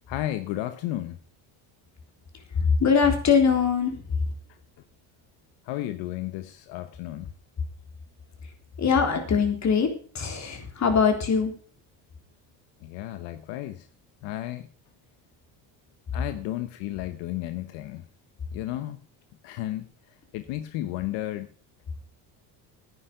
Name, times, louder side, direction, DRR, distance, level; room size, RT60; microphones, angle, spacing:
voice 1, 0.1-1.2 5.6-7.3 12.8-13.9 14.2-14.7 16.1-18.0 18.5-19.0 19.4-19.9 20.3-21.5, left 14 dB, 80° left, 10 dB, 1.1 m, -33 dB
voice 2, 2.5-4.0 8.8-9.9 10.1-11.5, left 6 dB, 40° left, 5 dB, 3.7 m, -22 dB
10.0 x 10.0 x 6.6 m, 0.42 s
cardioid pair, 105°, 43 cm